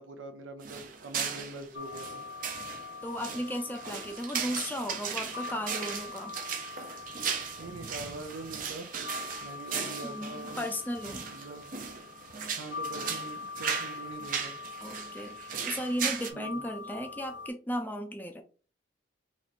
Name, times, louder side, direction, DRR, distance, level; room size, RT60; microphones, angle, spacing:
voice 1, 0.0-2.2 7.6-8.9 9.4-10.6 11.3-11.6 12.6-14.5 16.3-16.6, right 2 dB, 80° right, 6 dB, 0.6 m, -43 dB
sound 1, 0.6-16.3, right 6 dB, 45° right, 0.6 m, -37 dB
sound 2, 1.7-17.5, left 4 dB, 65° left, 0.6 m, -44 dB
voice 2, 3.0-6.4 10.0-11.3 14.8-18.4, equal, 10° left, 5 dB, 0.5 m, -35 dB
3.1 x 3.1 x 4.1 m, 0.39 s
head